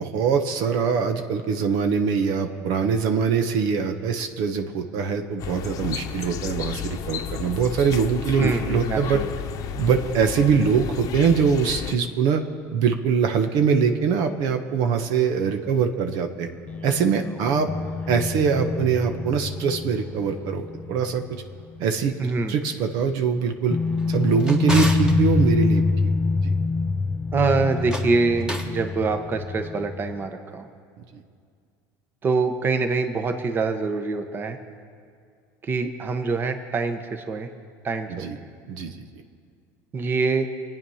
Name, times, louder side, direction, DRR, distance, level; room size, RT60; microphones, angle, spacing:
voice 1, 0.0-9.2 9.7-12.4 12.7-16.5 16.8-17.7 18.1-21.4 21.8-23.8 24.1-25.8 26.4-26.5 38.1-38.4 38.7-38.9, right 6 dB, 65° right, 6 dB, 1.2 m, -23 dB
sound 1, 5.4-12.0, left 9 dB, 55° left, 0.9 m, -32 dB
voice 2, 8.4-9.3 22.2-22.6 27.3-30.7 32.2-34.6 35.7-37.5 37.8-38.3 39.9-40.5, right 4 dB, 30° right, 7 dB, 1.2 m, -25 dB
sound 2, 16.7-22.1 22.4-22.5 23.7-30.3, left 4 dB, 20° left, 0.4 m, -26 dB
Drawer open or close, 24.0-25.2 27.7-28.8, equal, 10° right, 1.5 m, -32 dB
24.5 x 9.2 x 5.7 m, 2.2 s
supercardioid pair, 115°, 7 cm